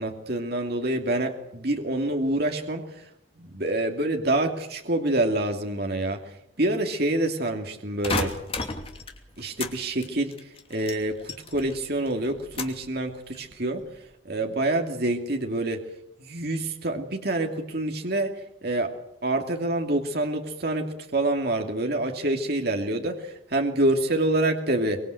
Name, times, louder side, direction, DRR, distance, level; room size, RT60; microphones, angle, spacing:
voice 1, 0.0-2.8 3.4-6.2 6.6-8.3 9.4-10.3 10.7-13.8 14.2-15.8 16.2-18.3 18.6-18.9 19.2-25.0, right 1 dB, 55° right, 3 dB, 2.7 m, -26 dB
sound 1, 8.0-9.8 10.0-11.8 12.1-12.9 13.3-13.8, left 3 dB, 30° left, 2.8 m, -32 dB
25.0 x 22.5 x 8.0 m, 0.78 s
head